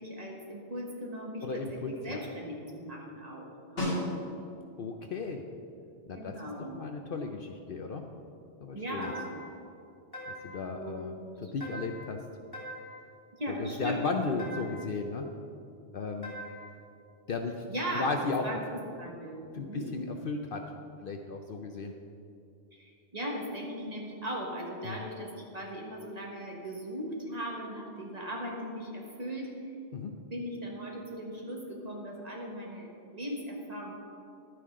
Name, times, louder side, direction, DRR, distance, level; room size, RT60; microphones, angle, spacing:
voice 1, 0.0-4.0 6.1-6.8 8.7-9.3 10.7-11.5 13.3-14.3 17.7-18.1 18.4-19.9 22.7-29.7 30.3-33.9, equal, 35° right, -2 dB, 1.6 m, -38 dB
voice 2, 1.4-2.2 3.8-3.9 4.8-5.4 6.1-6.3 6.6-8.0 8.6-9.1 10.3-11.1 11.4-12.2 13.6-15.3 15.9-16.3 17.3-17.6 17.9-18.6 19.5-20.6 21.0-21.9 24.8-25.0 29.9-30.1, left 4 dB, 55° left, 4 dB, 0.7 m, -35 dB
Snare drum, 3.8-4.7 9.1-9.2, left 1 dB, 75° left, 2.5 m, -33 dB
sound 1, 9.0-9.6 10.1-10.7 11.6-12.1 12.5-13.1 14.4-14.9 16.2-16.8, equal, 20° left, 1.9 m, -43 dB
11.5 x 9.2 x 3.7 m, 2.6 s
omnidirectional pair, 1.2 m